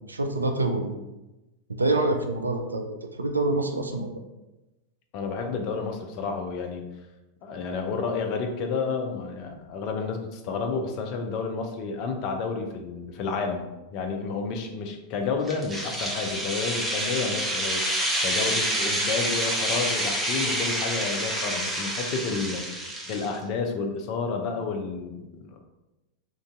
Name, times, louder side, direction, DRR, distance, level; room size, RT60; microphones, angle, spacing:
voice 1, 0.0-0.9 1.7-4.2, right 2 dB, 80° right, 4 dB, 0.3 m, -26 dB
voice 2, 5.1-6.8 7.4-17.9 18.2-22.7 23.1-25.6, left 4 dB, 40° left, 4 dB, 0.4 m, -30 dB
sound 1, 15.5-23.4, right 1 dB, 10° right, 0.6 m, -28 dB
2.5 x 2.2 x 3.6 m, 1.0 s
figure-of-eight pair, 90°, 0 cm